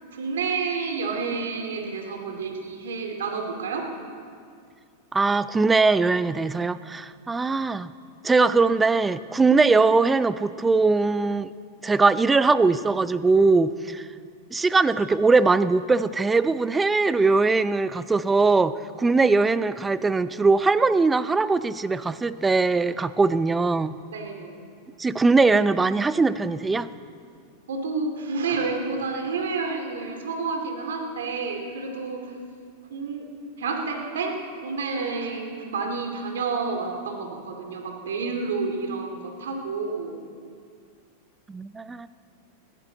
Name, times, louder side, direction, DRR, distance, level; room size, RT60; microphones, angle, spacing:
voice 1, 0.1-3.9 24.1-24.6 27.7-32.2 32.9-33.3 33.6-40.2, right 4 dB, 85° right, 3 dB, 2.5 m, -29 dB
voice 2, 5.1-7.9 8.2-11.5 11.8-14.1 14.5-23.9 25.0-26.9 41.5-42.1, right 3 dB, 15° right, 15 dB, 0.5 m, -21 dB
21.5 x 15.5 x 4.0 m, 2.2 s
hypercardioid pair, 120°, 0 cm